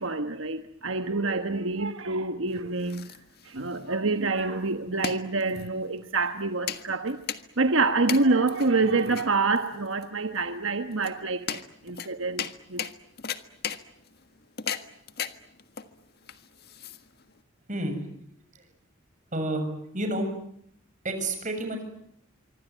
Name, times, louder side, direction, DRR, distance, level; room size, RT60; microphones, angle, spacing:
voice 1, 0.0-3.1 3.4-7.2 7.6-12.8, right 3 dB, 75° right, 1.3 m, -27 dB
sound 1, 2.5-17.4, left 7 dB, 50° left, 1.6 m, -38 dB
voice 2, 17.7-18.1 18.5-18.7 19.3-19.7 19.9-20.3 21.0-21.8, right 1 dB, 40° right, 7.0 m, -29 dB
25.5 x 25.0 x 9.2 m
head